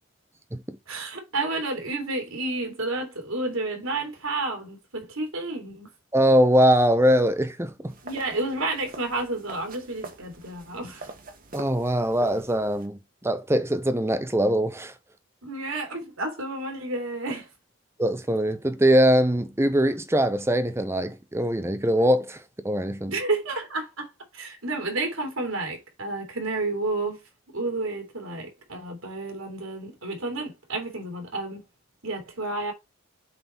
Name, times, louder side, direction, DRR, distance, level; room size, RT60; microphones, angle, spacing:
voice 1, 0.9-5.9 8.0-11.1 15.4-17.5 23.1-27.2 27.5-31.6 32.0-32.7, right 2 dB, 75° right, 2.9 m, -31 dB
voice 2, 6.1-7.9 11.5-14.9 18.0-23.1, equal, 10° right, 0.7 m, -22 dB
sound 1, 7.9-12.9, right 2 dB, 40° right, 1.4 m, -44 dB
8.0 x 4.1 x 4.3 m
head